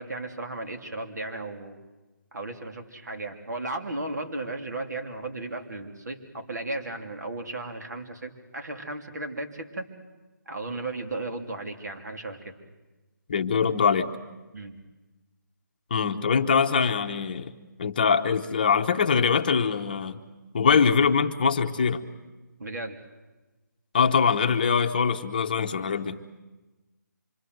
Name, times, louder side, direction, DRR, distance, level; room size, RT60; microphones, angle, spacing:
voice 1, 0.0-1.8 2.3-9.9 10.5-12.5 14.5-14.8 22.6-23.0, right 2 dB, 60° right, 5 dB, 3.2 m, -35 dB
voice 2, 13.3-14.1 15.9-17.5 17.8-20.2 20.5-22.0 23.9-26.2, left 6 dB, 25° left, 6 dB, 1.0 m, -23 dB
26.0 x 23.5 x 7.9 m, 1.1 s
hypercardioid pair, 170°, 10 cm